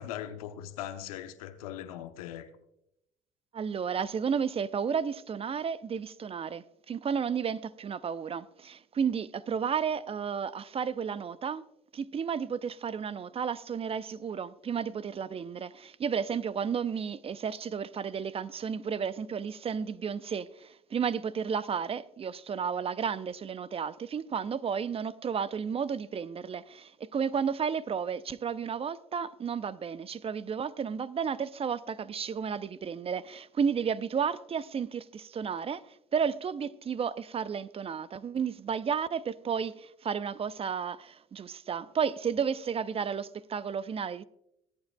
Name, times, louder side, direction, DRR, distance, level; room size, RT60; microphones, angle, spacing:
voice 1, 0.0-2.5, left 11 dB, 80° left, 0.9 m, -40 dB
voice 2, 3.5-11.6 11.9-44.2, right 7 dB, 30° right, 0.5 m, -32 dB
23.5 x 8.8 x 2.3 m
hypercardioid pair, 60°, 18 cm